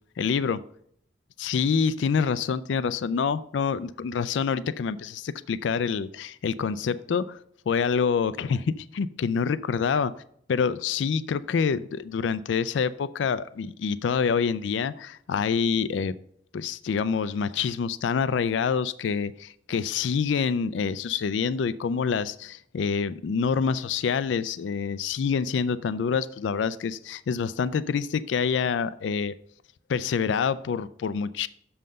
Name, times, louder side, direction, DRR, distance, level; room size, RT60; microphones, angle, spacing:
voice 1, 0.2-0.6 1.4-7.4 7.7-10.1 10.5-16.1 16.5-29.3 29.9-31.5, left 6 dB, 90° left, 16 dB, 0.4 m, -26 dB
6.6 x 5.6 x 5.2 m, 0.67 s
head